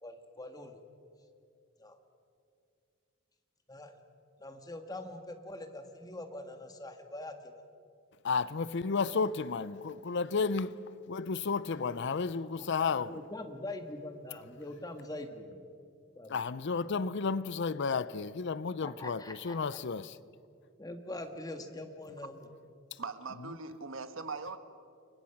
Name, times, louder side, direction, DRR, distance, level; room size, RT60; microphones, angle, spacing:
voice 1, 0.0-0.8 1.8-2.0 3.7-4.0 4.4-7.6 13.1-15.6 16.1-16.4 18.8-19.6 20.8-22.4, left 1 dB, 20° left, 1.7 m, -43 dB
voice 2, 8.2-13.2 16.3-20.2, left 5 dB, 60° left, 0.5 m, -32 dB
voice 3, 23.0-24.6, right 4 dB, 70° right, 1.3 m, -40 dB
30.0 x 23.5 x 5.9 m
head